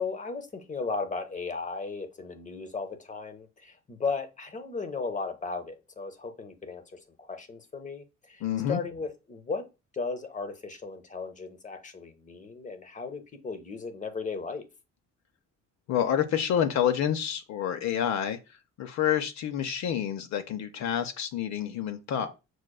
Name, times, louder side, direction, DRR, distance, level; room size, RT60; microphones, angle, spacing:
voice 1, 0.0-8.4 8.7-9.6 9.9-14.7, left 4 dB, 25° left, 8 dB, 0.7 m, -36 dB
voice 2, 8.4-8.8 15.9-22.3, left 9 dB, 65° left, 7 dB, 0.5 m, -28 dB
6.1 x 2.2 x 2.2 m, 0.28 s
cardioid pair, 90°, 30 cm